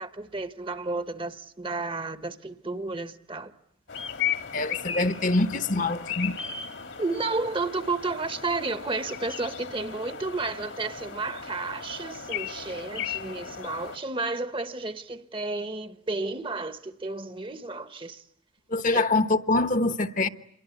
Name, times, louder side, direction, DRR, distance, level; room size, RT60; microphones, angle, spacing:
voice 1, 0.0-3.5 7.0-18.2 18.9-19.0, right 3 dB, 25° right, 1.1 m, -32 dB
sound 1, 3.9-14.0, left 7 dB, 65° left, 1.8 m, -36 dB
voice 2, 4.5-6.4 18.7-20.3, left 2 dB, 40° left, 1.1 m, -24 dB
28.0 x 22.5 x 9.3 m
head